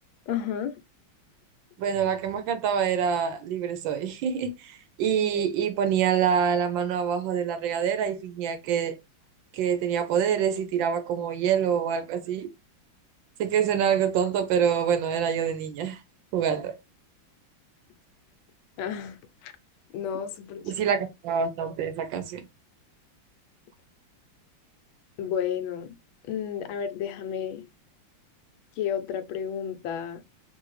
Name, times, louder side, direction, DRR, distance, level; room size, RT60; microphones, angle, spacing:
voice 1, 0.3-0.8 18.8-19.2 19.4-19.5 19.9-20.7 25.2-25.9 26.3-27.6 28.8-30.2, left 8 dB, 80° left, 1.4 m, -31 dB
voice 2, 1.8-9.0 9.5-12.5 13.4-16.0 16.3-16.8 20.6-22.4, right 8 dB, 75° right, 1.3 m, -26 dB
3.9 x 2.6 x 3.1 m
omnidirectional pair, 2.2 m